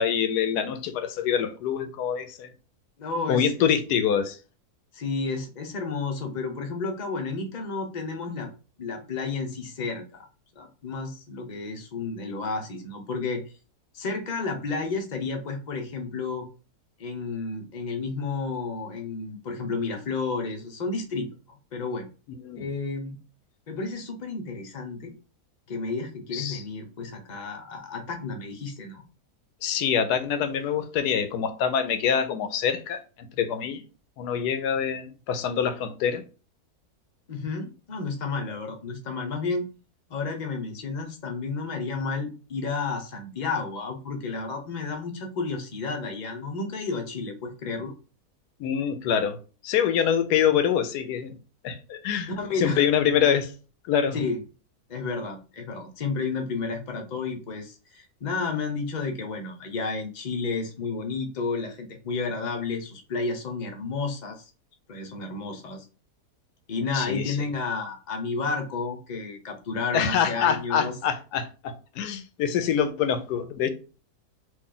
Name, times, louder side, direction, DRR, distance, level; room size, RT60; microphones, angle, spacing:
voice 1, 0.0-2.5 3.3-4.4 22.4-22.7 26.3-26.6 29.6-33.8 34.2-36.2 48.6-49.4 49.6-51.4 51.6-52.3 52.6-53.5 53.9-54.2 66.9-67.4 69.9-73.7, left 8 dB, 90° left, 1.2 m, -25 dB
voice 2, 3.0-3.7 4.9-8.5 8.8-10.3 10.6-13.4 13.9-16.5 17.0-22.1 22.5-23.2 23.7-25.1 25.7-29.0 37.3-39.7 40.1-47.9 52.3-52.9 54.1-54.4 54.9-64.5 64.9-65.8 66.7-70.9, left 4 dB, 45° left, 0.6 m, -31 dB
3.1 x 2.6 x 3.8 m
omnidirectional pair, 1.6 m